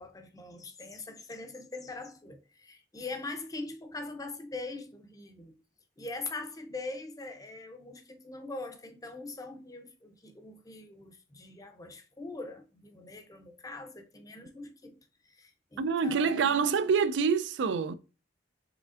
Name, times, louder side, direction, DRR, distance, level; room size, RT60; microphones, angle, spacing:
voice 1, 0.0-5.6 6.0-15.0 15.3-16.7, left 3 dB, 20° left, 0.5 m, -42 dB
voice 2, 15.8-17.9, right 5 dB, 75° right, 0.4 m, -26 dB
5.0 x 3.2 x 2.4 m
head